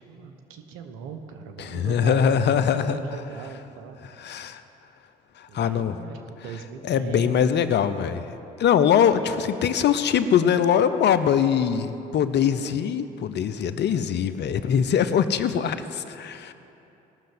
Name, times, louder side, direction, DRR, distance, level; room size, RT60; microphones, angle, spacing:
voice 1, 0.1-4.2 5.5-7.8, right 6 dB, 85° right, 6 dB, 1.1 m, -39 dB
voice 2, 1.6-3.0 4.2-4.6 5.4-5.9 6.8-8.2 8.6-16.5, left 8 dB, 60° left, 11 dB, 0.8 m, -22 dB
18.5 x 6.6 x 7.8 m, 2.9 s
supercardioid pair, 60°, 20 cm